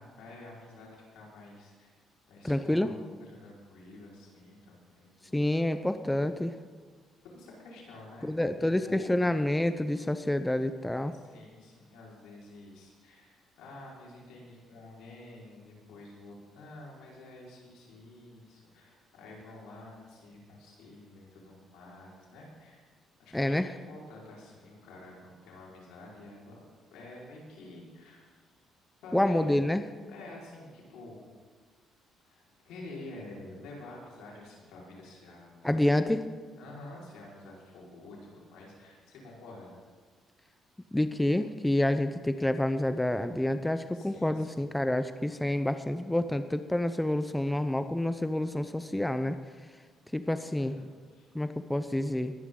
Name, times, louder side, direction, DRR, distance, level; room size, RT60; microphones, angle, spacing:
voice 1, 0.0-1.9 2.3-2.9 3.2-5.6 7.2-8.3 8.6-9.1 11.1-22.8 23.2-26.6 26.9-28.3 29.0-29.5 30.0-31.3 32.3-35.8 36.6-39.7 43.8-44.7 50.0-50.8 51.1-51.3, left 2 dB, 80° left, -4 dB, 4.8 m, -49 dB
voice 2, 2.4-3.0 5.3-6.5 8.2-11.1 23.3-23.7 29.1-29.8 35.6-36.2 40.9-49.4 50.1-50.7 51.3-52.3, left 1 dB, 10° left, 10 dB, 0.7 m, -28 dB
21.0 x 11.0 x 3.9 m, 1.5 s
supercardioid pair, 75°, 0 cm